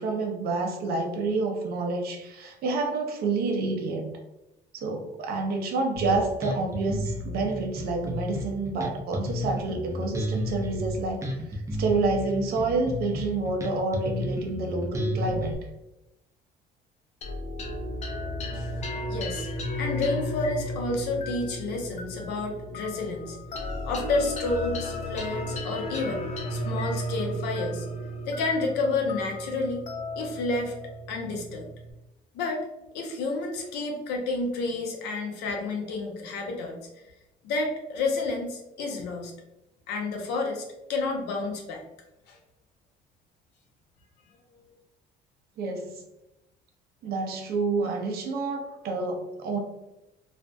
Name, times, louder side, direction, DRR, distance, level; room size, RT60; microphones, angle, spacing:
voice 1, 0.0-4.1 4.7-11.2 11.5-15.5 45.6-46.0 47.0-49.6, right 3 dB, 65° right, 3 dB, 0.6 m, -28 dB
Bass guitar, 6.0-15.6, equal, 20° right, 0.4 m, -32 dB
sound 1, 17.2-31.9, left 1 dB, 40° left, 0.5 m, -34 dB
voice 2, 18.5-26.2 26.5-27.9 28.3-29.8 30.2-30.7 31.1-31.7 32.3-32.6 32.9-37.1 37.4-39.3 39.9-41.8 42.3-42.4, left 3 dB, 85° left, 1 dB, 0.6 m, -30 dB
2.4 x 2.1 x 2.5 m, 0.93 s
cardioid pair, 110°, 17 cm